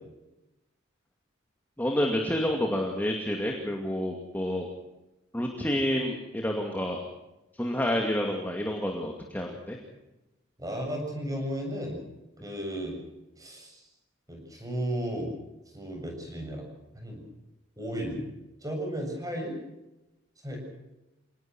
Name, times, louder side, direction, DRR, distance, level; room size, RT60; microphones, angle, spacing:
voice 1, 1.8-4.7 5.3-7.0 7.6-9.8, left 1 dB, 10° left, 1 dB, 2.4 m, -29 dB
voice 2, 10.6-12.0 12.4-12.9 13.4-13.8 14.3-15.3 15.7-16.7 16.9-17.2 17.8-18.2 18.6-19.6 20.4-20.6, equal, 20° right, 2 dB, 7.4 m, -34 dB
27.0 x 19.5 x 6.3 m, 0.97 s
head